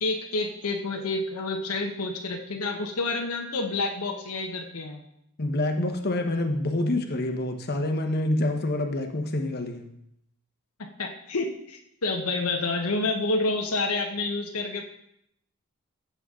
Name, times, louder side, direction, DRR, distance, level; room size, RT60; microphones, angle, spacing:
voice 1, 0.0-5.0 10.8-14.8, left 3 dB, 75° left, 2 dB, 1.1 m, -29 dB
voice 2, 5.4-9.9, left 1 dB, 45° left, 5 dB, 1.2 m, -27 dB
15.5 x 7.1 x 3.8 m, 0.76 s
head